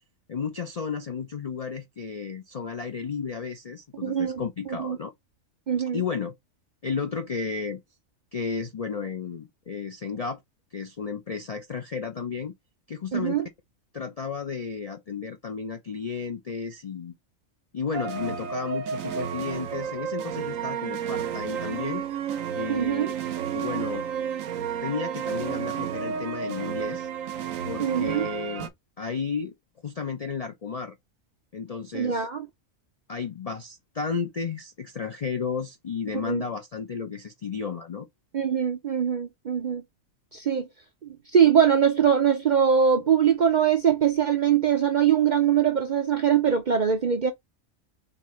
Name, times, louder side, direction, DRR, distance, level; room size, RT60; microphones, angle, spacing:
voice 1, 0.3-5.1 5.9-6.3 6.8-7.8 8.3-10.4 10.7-12.5 12.9-13.4 13.9-17.1 17.7-22.0 22.5-23.1 23.5-24.1 24.8-27.1 27.6-28.7 29.0-29.5 29.8-31.0 31.5-32.3 33.1-38.1, left 5 dB, 55° left, 0.4 m, -33 dB
voice 2, 4.0-4.4 4.8-5.0 5.7-6.0 13.1-13.5 22.7-23.1 27.8-28.3 31.9-32.5 36.2-36.4 38.3-39.8 40.3-40.7 41.0-47.3, right 8 dB, 50° right, 0.5 m, -22 dB
sound 1, 17.9-28.7, right 8 dB, 80° right, 1.1 m, -31 dB
4.1 x 4.1 x 3.0 m
omnidirectional pair, 1.4 m